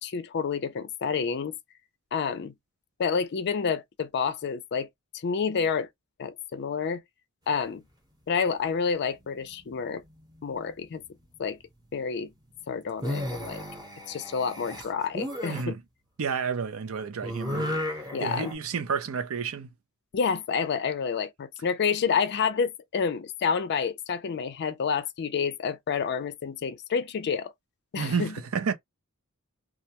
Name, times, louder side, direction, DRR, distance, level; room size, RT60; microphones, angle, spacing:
voice 1, 0.0-1.6 2.1-2.5 3.0-4.9 5.1-5.9 6.2-7.0 7.5-7.8 8.3-10.0 10.4-11.0 11.4-11.6 11.9-12.3 12.7-13.6 14.1-15.8 18.1-18.5 20.1-27.5 27.9-28.3, left 6 dB, 50° left, 0.4 m, -29 dB
sound 1, 9.1-9.9 10.2-10.7 12.9-15.6 17.2-18.5, left 1 dB, 15° right, 0.9 m, -34 dB
voice 2, 15.5-15.8 16.2-17.7 18.2-19.7 28.0-28.7, right 6 dB, 65° right, 0.5 m, -30 dB
2.3 x 2.2 x 2.8 m
head